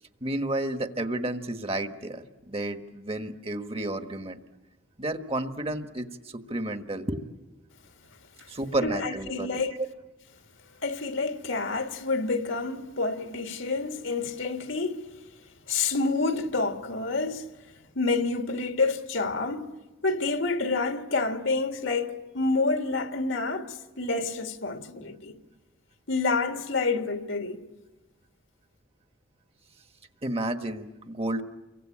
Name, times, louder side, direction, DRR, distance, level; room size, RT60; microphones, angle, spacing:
voice 1, 0.2-4.4 5.0-7.2 8.5-9.9 30.2-31.4, right 1 dB, 30° right, 1.3 m, -31 dB
voice 2, 8.8-9.8 10.8-15.0 15.7-17.5 18.0-19.7 20.0-25.4 26.1-27.6, left 3 dB, 75° left, 2.1 m, -28 dB
29.0 x 24.0 x 8.6 m
head